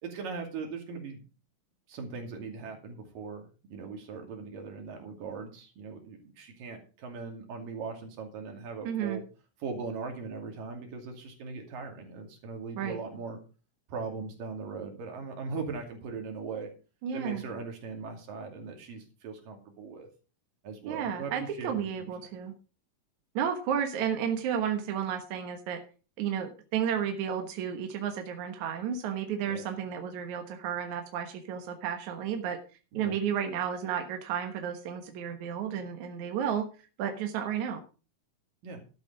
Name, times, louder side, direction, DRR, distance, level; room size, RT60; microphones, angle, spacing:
voice 1, 0.0-1.2 1.9-9.3 9.6-13.4 13.9-16.7 17.1-20.1 20.6-22.1 29.5-29.6 32.9-33.2 38.6-38.8, right 4 dB, 85° right, 3 dB, 4.3 m, -39 dB
voice 2, 8.8-9.2 12.8-13.0 17.0-17.4 20.9-22.5 23.3-25.8 26.2-32.6 32.9-36.7 37.0-37.8, right 8 dB, 65° right, 5 dB, 2.5 m, -32 dB
12.5 x 8.4 x 5.0 m, 0.35 s
omnidirectional pair, 3.8 m